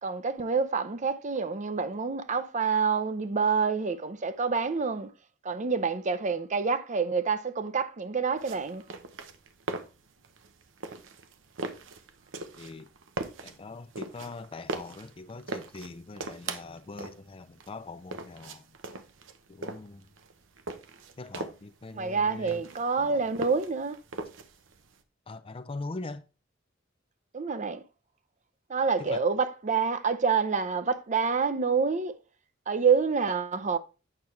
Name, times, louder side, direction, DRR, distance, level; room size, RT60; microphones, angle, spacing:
voice 1, 0.0-5.1 5.4-8.8 21.9-24.0 27.3-27.8 28.7-32.1 32.7-33.8, right 5 dB, 40° right, 0.6 m, -27 dB
sound 1, 8.4-25.0, right 3 dB, 85° right, 0.9 m, -40 dB
voice 2, 12.6-12.9 13.4-18.7 19.5-20.1 21.2-22.6 23.0-23.2 25.3-26.2 29.0-29.2, left 3 dB, 30° left, 0.4 m, -42 dB
8.7 x 6.0 x 3.2 m
head